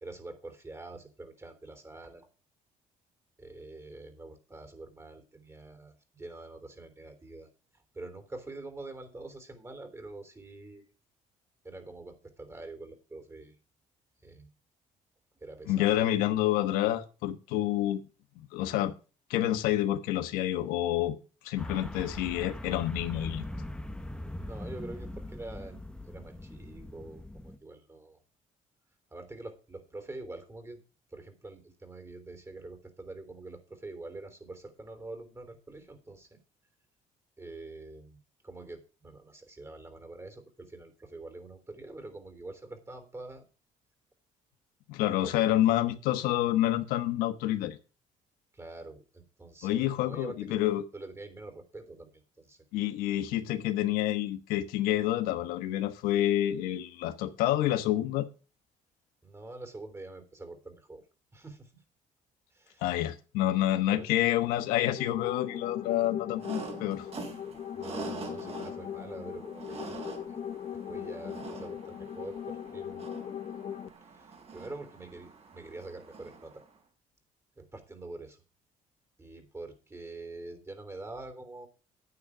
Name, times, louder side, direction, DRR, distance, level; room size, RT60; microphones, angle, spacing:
voice 1, 0.0-2.3 3.4-7.5 7.9-10.8 11.6-13.5 14.2-14.5 15.4-16.2 24.4-25.8 26.1-28.2 29.1-30.8 31.1-36.4 37.4-43.4 45.2-45.6 48.5-50.6 50.9-52.6 59.2-61.0 61.3-61.7 62.5-62.8 63.9-64.2 67.5-70.0 70.7-73.0 74.1-76.6 77.6-78.4 79.2-81.7, right 2 dB, 20° right, 3.3 m, -45 dB
voice 2, 15.7-18.0 18.5-18.9 19.3-21.2 21.4-23.4 44.9-47.8 49.6-50.8 52.7-58.3 62.8-67.1, left 13 dB, 90° left, 1.2 m, -28 dB
sound 1, 21.6-27.6, left 1 dB, 5° left, 1.1 m, -41 dB
sound 2, 64.6-73.9, left 9 dB, 45° left, 1.0 m, -40 dB
sound 3, 66.4-76.7, right 4 dB, 45° right, 4.3 m, -45 dB
9.8 x 8.8 x 4.9 m
cardioid pair, 90°, 15 cm